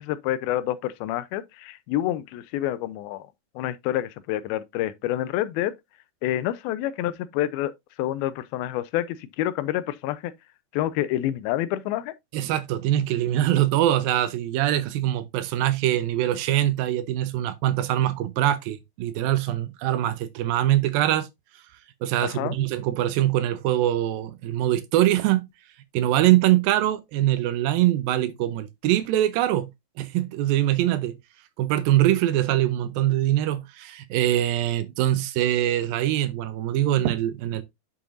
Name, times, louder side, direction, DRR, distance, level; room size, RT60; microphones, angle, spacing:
voice 1, 0.0-3.3 3.6-5.7 6.2-7.7 8.0-10.3 10.7-12.1 22.2-22.6, left 13 dB, 85° left, 2.5 m, -28 dB
voice 2, 12.3-21.3 22.0-25.4 25.9-29.7 30.0-31.2 31.6-37.6, right 13 dB, 80° right, 2.4 m, -23 dB
8.7 x 7.0 x 2.5 m
omnidirectional pair, 4.3 m